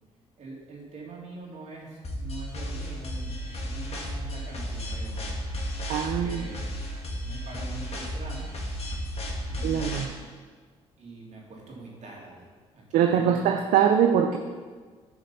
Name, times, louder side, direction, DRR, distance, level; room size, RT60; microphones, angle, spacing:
voice 1, 0.4-5.4 6.2-6.7 7.2-8.5 9.4-10.3 11.0-12.5 12.7-13.5, right 3 dB, 55° right, -3 dB, 3.1 m, -43 dB
sound 1, 2.0-10.0, equal, 45° left, 2.1 m, -33 dB
voice 2, 5.9-6.6 9.6-10.1 12.9-14.4, right 8 dB, 70° right, 5 dB, 0.6 m, -23 dB
10.5 x 5.1 x 5.7 m, 1.5 s
hypercardioid pair, 55°, 14 cm